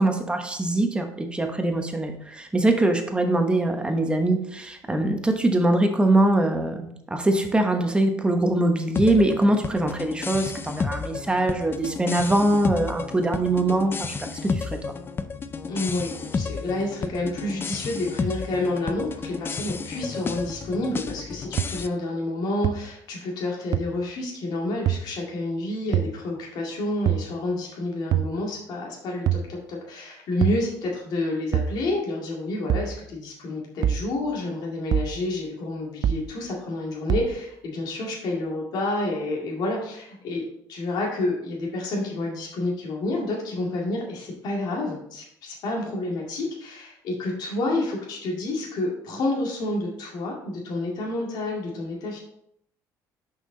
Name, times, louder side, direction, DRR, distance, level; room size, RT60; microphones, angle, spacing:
voice 1, 0.0-14.9, right 1 dB, 15° right, 4 dB, 1.1 m, -23 dB
sound 1, 8.9-21.9, left 5 dB, 30° left, 0.5 m, -32 dB
voice 2, 15.7-40.4 40.7-52.2, left 2 dB, 65° left, -2 dB, 2.2 m, -29 dB
sound 2, 21.6-21.7 22.6-22.7 23.7-23.8 24.9-25.0 25.9-26.1 27.1-27.3 28.1-28.3 29.3-29.5 30.4-30.6 31.5-31.8 32.7-32.9 33.8-34.0 34.9-35.1 36.0-36.3 37.1-37.3, right 10 dB, 55° right, 0.5 m, -23 dB
6.1 x 5.7 x 3.9 m, 0.70 s
cardioid pair, 100°, 8 cm